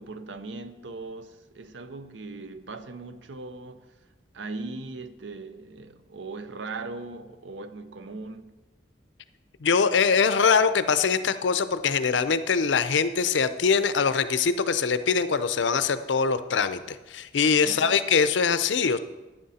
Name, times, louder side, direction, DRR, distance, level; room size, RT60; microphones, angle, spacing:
voice 1, 0.0-3.9 4.3-8.5 17.6-18.1, right 3 dB, 85° right, 0.7 m, -39 dB
voice 2, 9.6-19.0, left 5 dB, 85° left, 0.6 m, -23 dB
11.5 x 9.6 x 4.2 m
head